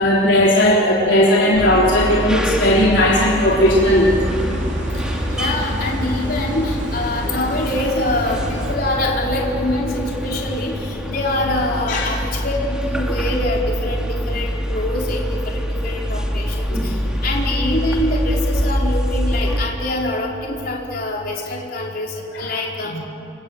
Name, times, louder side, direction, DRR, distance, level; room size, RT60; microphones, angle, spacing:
voice 1, 0.0-4.3 11.9-12.1 16.7-16.8 22.3-22.6 22.9-23.0, left 1 dB, 65° left, -4 dB, 3.6 m, -16 dB
sound 1, 1.5-19.6, equal, 5° right, 2.5 m, -25 dB
sound 2, 3.7-8.8, equal, 70° right, 3.2 m, -29 dB
voice 2, 5.0-23.0, left 1 dB, 45° left, -2 dB, 4.6 m, -24 dB
29.0 x 25.0 x 7.8 m, 2.9 s
head